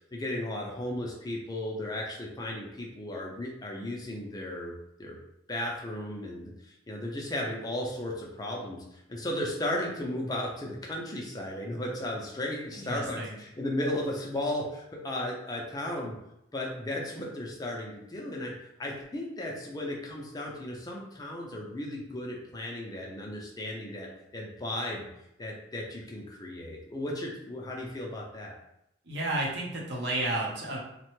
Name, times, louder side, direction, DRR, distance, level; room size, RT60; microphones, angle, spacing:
voice 1, 0.1-4.7 5.0-5.2 5.5-6.5 6.9-16.1 16.5-18.5 18.8-25.1 25.4-28.5, left 1 dB, 20° left, -1 dB, 0.4 m, -35 dB
voice 2, 12.7-13.3 29.1-30.8, right 2 dB, 60° right, -3 dB, 0.8 m, -32 dB
3.2 x 2.1 x 3.0 m, 0.80 s
head